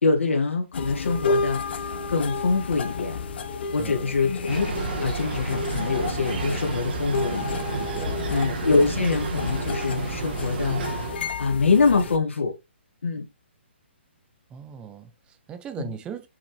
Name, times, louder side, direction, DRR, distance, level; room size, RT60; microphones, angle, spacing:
voice 1, 0.0-3.2 3.7-4.7 4.9-8.0 8.3-12.5 13.0-13.2, left 4 dB, 80° left, 1.8 m, -24 dB
sound 1, 0.7-12.2, left 4 dB, 55° left, 1.1 m, -31 dB
voice 2, 3.8-4.2 7.8-8.2 14.5-16.3, right 7 dB, 15° right, 1.0 m, -39 dB
sound 2, 4.5-11.2, right 4 dB, 50° right, 1.8 m, -31 dB
7.5 x 5.9 x 3.2 m
hypercardioid pair, 150°, 7 cm